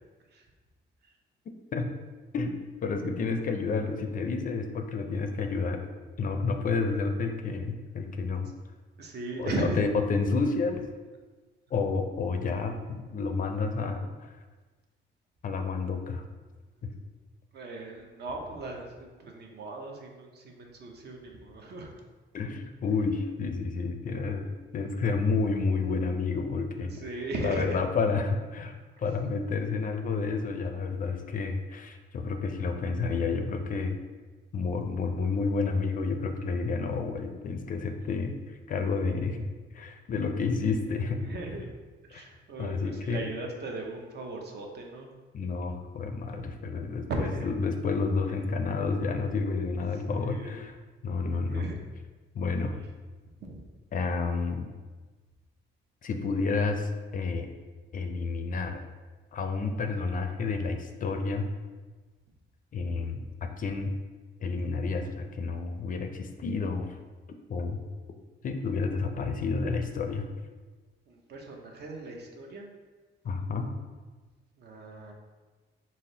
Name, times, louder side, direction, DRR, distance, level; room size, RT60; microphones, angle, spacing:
voice 1, 2.3-5.8 6.2-8.5 9.4-10.8 11.7-14.4 15.4-16.2 22.3-24.5 24.7-26.9 27.2-28.7 29.0-34.0 34.5-38.3 38.7-39.4 39.7-41.2 42.1-42.2 42.6-43.3 45.3-50.7 51.0-51.6 52.3-52.8 53.9-54.7 56.0-57.5 57.9-58.8 59.3-61.5 62.7-63.9 64.4-67.0 67.5-67.8 68.4-70.3 73.2-73.7, left 4 dB, 45° left, 5 dB, 0.4 m, -30 dB
voice 2, 9.0-9.8 17.5-21.9 26.8-27.8 41.2-41.7 42.0-45.1 46.3-46.4 47.1-47.5 50.1-50.6 51.4-51.8 53.4-53.6 71.1-72.7 74.6-75.1, right 2 dB, 55° right, 1 dB, 0.7 m, -37 dB
4.1 x 2.0 x 3.8 m, 1.3 s
cardioid pair, 90°, 20 cm